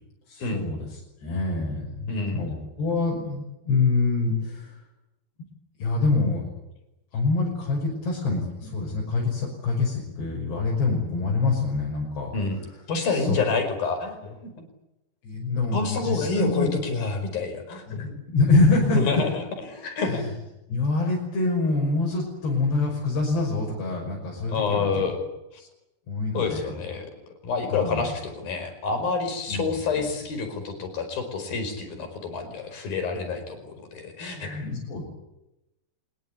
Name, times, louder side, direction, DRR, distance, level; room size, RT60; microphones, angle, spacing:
voice 1, 0.3-0.8 1.2-4.7 5.8-6.4 7.1-12.3 13.1-13.4 15.2-16.7 17.9-19.2 20.1-20.3 20.7-25.0 26.1-26.7 27.7-28.1 29.5-29.6 29.9-30.1 34.3-35.0, left 3 dB, 75° left, -1 dB, 8.1 m, -25 dB
voice 2, 2.1-2.4 12.3-12.6 12.9-14.4 15.7-18.2 18.9-19.4 19.7-20.3 24.5-25.2 25.5-25.7 26.3-27.1 27.4-34.7, left 4 dB, 60° left, 7 dB, 6.7 m, -28 dB
25.5 x 21.0 x 9.8 m, 0.91 s
omnidirectional pair, 4.9 m